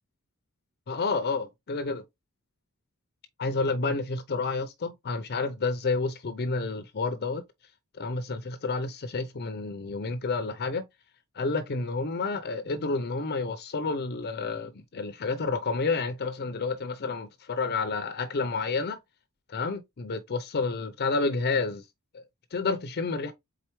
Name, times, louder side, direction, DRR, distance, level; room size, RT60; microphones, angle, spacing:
voice 1, 0.9-2.0 3.4-7.4 8.0-10.9 11.4-19.0 19.5-21.8 22.1-22.2 22.5-23.3, left 3 dB, 45° left, 0.5 m, -30 dB
4.4 x 3.9 x 3.0 m
head